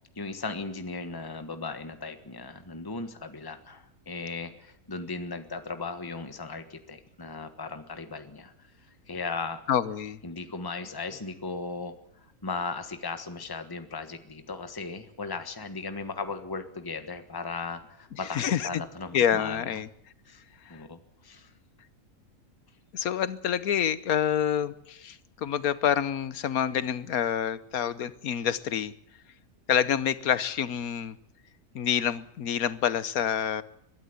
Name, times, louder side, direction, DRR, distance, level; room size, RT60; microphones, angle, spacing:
voice 1, 0.1-8.5 9.1-9.6 10.2-11.9 12.4-19.6 20.3-20.4 20.7-21.5, left 4 dB, 15° left, 1.4 m, -37 dB
voice 2, 9.7-10.2 18.3-18.8 19.1-19.9 20.7-20.8 22.9-28.9 29.7-31.2 31.7-33.6, left 9 dB, 85° left, 1.4 m, -27 dB
22.5 x 12.5 x 9.6 m
omnidirectional pair, 1.5 m